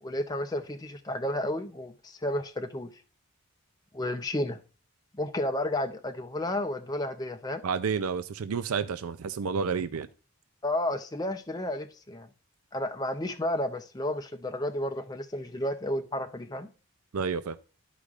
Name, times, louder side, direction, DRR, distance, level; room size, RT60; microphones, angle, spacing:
voice 1, 0.0-2.9 3.9-4.6 5.1-7.6 10.6-12.3 12.7-16.7, left 1 dB, 20° left, 0.5 m, -32 dB
voice 2, 7.6-10.1 17.1-17.6, right 5 dB, 85° right, 0.5 m, -30 dB
13.0 x 4.9 x 2.4 m
head